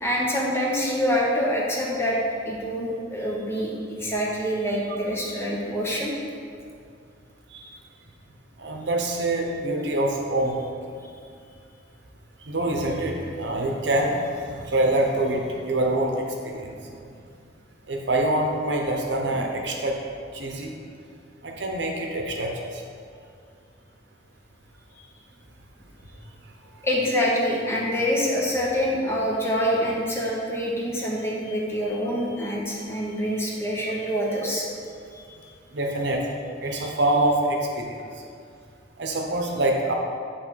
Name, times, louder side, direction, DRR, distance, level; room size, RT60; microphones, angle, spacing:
voice 1, 0.0-2.2 2.4-6.1 26.8-34.7 35.1-35.2, equal, 15° left, -3 dB, 0.9 m, -26 dB
voice 2, 8.6-10.6 12.5-16.7 17.9-20.0 20.3-20.7 21.4-22.8 35.7-36.2 36.6-38.0 39.0-39.9, right 1 dB, 70° right, 1 dB, 0.8 m, -25 dB
8.1 x 3.2 x 4.6 m, 2.3 s
head